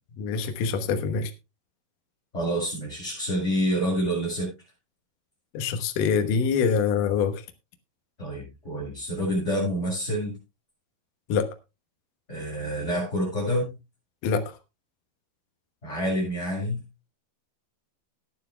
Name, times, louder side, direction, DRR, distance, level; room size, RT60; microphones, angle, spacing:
voice 1, 0.2-1.3 5.5-7.4 11.3-11.5 14.2-14.4, left 6 dB, 80° left, 6 dB, 1.8 m, -25 dB
voice 2, 2.3-4.5 8.2-10.3 12.3-13.7 15.8-16.8, equal, 15° left, -7 dB, 6.8 m, -27 dB
19.0 x 10.0 x 2.2 m, 0.25 s
omnidirectional pair, 5.7 m